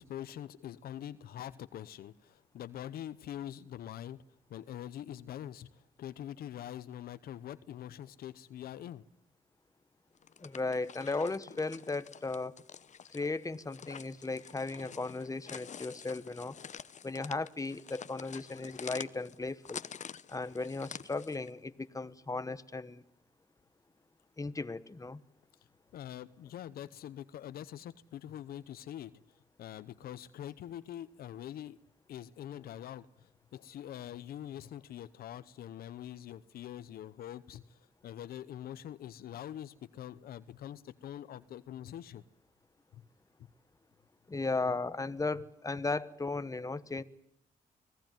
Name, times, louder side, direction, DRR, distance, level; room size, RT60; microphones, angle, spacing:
voice 1, 0.0-4.2 4.5-9.0 25.9-29.2 29.6-31.8 32.1-42.2 42.9-43.0 44.3-44.4, left 11 dB, 85° left, 15 dB, 0.9 m, -44 dB
sound 1, 10.2-21.5, left 7 dB, 50° left, 0.9 m, -48 dB
voice 2, 10.4-12.5 13.1-16.6 17.0-19.8 20.3-23.0 24.4-25.2 44.3-47.0, left 3 dB, 20° left, 13 dB, 1.3 m, -36 dB
25.5 x 17.5 x 9.3 m, 0.74 s
cardioid pair, 65°, 15 cm